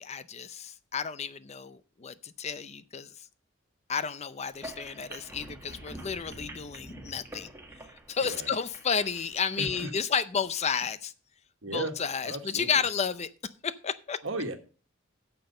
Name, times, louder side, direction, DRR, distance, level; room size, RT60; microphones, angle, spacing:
voice 1, 0.0-3.3 3.9-7.5 8.1-11.1 11.7-13.3 13.6-14.2, left 6 dB, 35° left, 15 dB, 0.5 m, -32 dB
sound 1, 4.5-9.9, right 1 dB, 10° right, 1.7 m, -46 dB
voice 2, 8.2-8.5 9.6-9.9 11.6-12.0 12.2-12.8 14.2-14.6, right 2 dB, 70° right, 7 dB, 1.5 m, -35 dB
9.2 x 6.9 x 5.3 m, 0.38 s
head